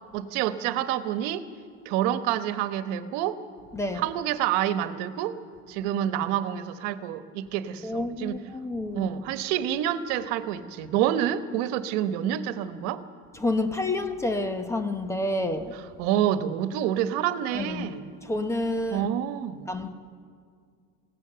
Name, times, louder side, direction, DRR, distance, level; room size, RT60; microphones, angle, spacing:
voice 1, 0.1-1.5 1.8-3.4 4.0-5.4 5.7-8.4 8.9-13.0 16.0-18.1 18.9-19.7, right 11 dB, 85° right, 11 dB, 1.2 m, -28 dB
voice 2, 3.7-4.1 7.8-9.1 13.3-15.8 17.5-17.9 18.2-19.1 19.7-19.9, left 2 dB, 10° left, 8 dB, 0.8 m, -29 dB
27.5 x 17.5 x 6.8 m, 2.2 s
cardioid pair, 180°, 32 cm